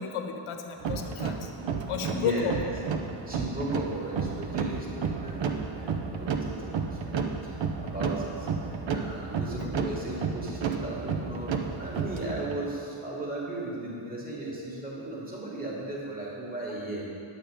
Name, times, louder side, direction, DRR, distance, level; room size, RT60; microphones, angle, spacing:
voice 1, 0.0-1.5 1.9-2.5 9.6-9.7, left 7 dB, 80° left, 4 dB, 1.1 m, -32 dB
sound 1, 0.8-12.6, right 5 dB, 60° right, 0.9 m, -32 dB
voice 2, 2.1-2.6 3.3-7.1 7.4-17.0, right 1 dB, 15° right, -5 dB, 2.8 m, -36 dB
11.0 x 6.9 x 5.2 m, 2.6 s
cardioid pair, 60°, 50 cm